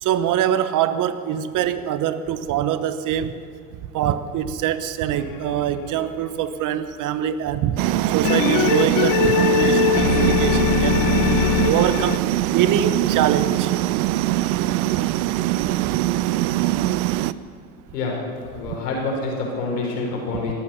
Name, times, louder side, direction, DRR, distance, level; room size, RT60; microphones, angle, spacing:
voice 1, 0.0-3.4 3.9-7.8 8.1-11.0 11.6-12.2 12.5-13.7 18.7-18.8, right 10 dB, 40° right, 13 dB, 0.9 m, -23 dB
sound 1, 5.1-6.4 8.2-12.2, left 12 dB, 45° left, 0.8 m, -22 dB
sound 2, 7.8-17.3, right 15 dB, 65° right, 0.6 m, -22 dB
voice 2, 18.5-20.5, left 3 dB, 85° left, -1 dB, 4.8 m, -27 dB
19.0 x 8.9 x 7.1 m, 2.1 s
hypercardioid pair, 95°, 47 cm